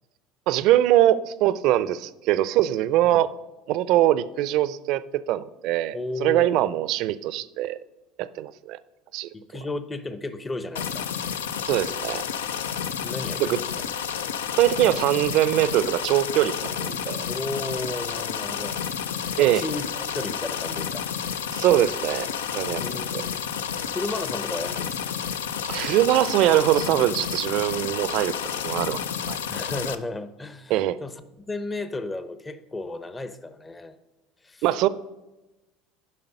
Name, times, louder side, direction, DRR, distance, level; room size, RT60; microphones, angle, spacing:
voice 1, 0.5-3.3 3.7-7.8 8.2-8.8 9.1-9.3 11.7-12.2 13.4-13.6 14.6-17.2 19.4-19.6 21.5-22.3 22.5-23.2 25.6-29.0 29.3-29.4 30.7-31.0 34.6-34.9, right 13 dB, 65° right, 0.5 m, -22 dB
voice 2, 5.9-6.6 9.3-11.1 13.0-13.9 17.3-18.7 19.4-19.9 20.1-21.1 22.7-23.4 23.9-25.1 29.5-34.0 34.4-34.6, left 2 dB, 20° left, 0.7 m, -34 dB
sound 1, 10.7-29.9, left 8 dB, 85° left, 0.4 m, -30 dB
11.0 x 5.5 x 5.4 m
hypercardioid pair, 80°, 0 cm